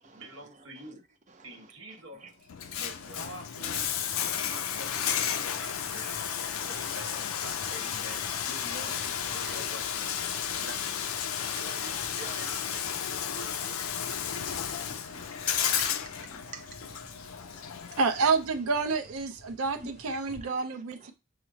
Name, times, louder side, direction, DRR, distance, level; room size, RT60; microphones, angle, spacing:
voice 1, 0.1-1.0 1.4-2.3 2.8-3.9 4.3-6.2 6.7-10.2 10.5-11.1 11.4-13.9 14.3-15.2, right 1 dB, 70° right, 1.2 m, -47 dB
Bathtub (filling or washing), 2.5-18.4, left 8 dB, 90° left, 0.5 m, -33 dB
voice 2, 2.6-3.2 3.9-4.3 5.6-5.7 6.0-6.2 6.6-6.7 8.1-8.2 9.4-9.6 11.3-11.7 12.9-13.0 13.8-18.0 19.8-19.9 20.2-20.6 21.0-21.1, right 4 dB, 35° right, 0.6 m, -49 dB
sound 1, 3.7-20.5, left 1 dB, 60° left, 1.5 m, -53 dB
voice 3, 18.0-21.1, right 4 dB, 85° right, 0.5 m, -28 dB
5.8 x 2.0 x 3.9 m
head